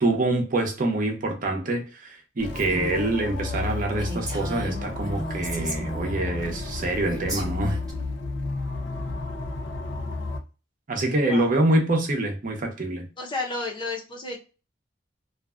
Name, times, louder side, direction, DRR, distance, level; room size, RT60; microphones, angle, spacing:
voice 1, 0.0-7.8 10.9-13.1, right 2 dB, 45° right, 0.6 m, -25 dB
sound 1, 2.4-10.4, left 3 dB, 75° left, 0.5 m, -32 dB
Female speech woman speaking, 2.5-3.2 3.6-3.7 4.0-6.3 7.0-7.9, right 1 dB, 20° right, 0.8 m, -35 dB
voice 2, 13.2-14.4, left 3 dB, 25° left, 0.6 m, -31 dB
2.5 x 2.2 x 2.3 m
head